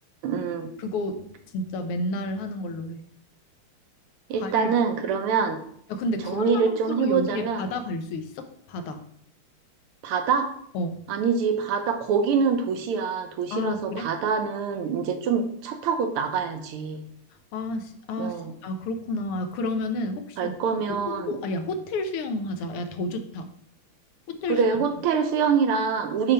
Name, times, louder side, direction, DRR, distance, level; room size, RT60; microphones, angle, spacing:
voice 1, 0.2-0.7 4.3-5.6 6.3-7.6 10.0-10.5 11.1-17.0 18.2-18.5 20.4-21.3 24.5-26.3, right 6 dB, 80° right, 6 dB, 1.7 m, -25 dB
voice 2, 0.8-3.0 4.4-4.7 5.9-9.0 10.7-11.0 13.5-14.1 17.5-20.5 20.9-23.5 24.3-24.7, left 2 dB, 85° left, 7 dB, 1.8 m, -31 dB
7.0 x 3.3 x 5.5 m, 0.67 s
omnidirectional pair, 2.4 m